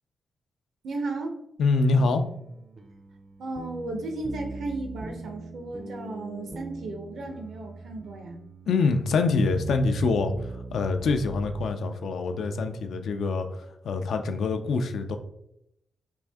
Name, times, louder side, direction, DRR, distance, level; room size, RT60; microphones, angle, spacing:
voice 1, 0.8-1.3 3.4-8.4, right 2 dB, 80° right, 4 dB, 0.8 m, -34 dB
voice 2, 1.6-2.2 8.7-10.3 10.7-15.2, left 3 dB, 85° left, 6 dB, 0.4 m, -25 dB
sound 1, 1.9-11.7, right 3 dB, 35° right, 0.4 m, -41 dB
4.5 x 2.6 x 3.5 m, 0.79 s
wide cardioid pair, 120°, 0 cm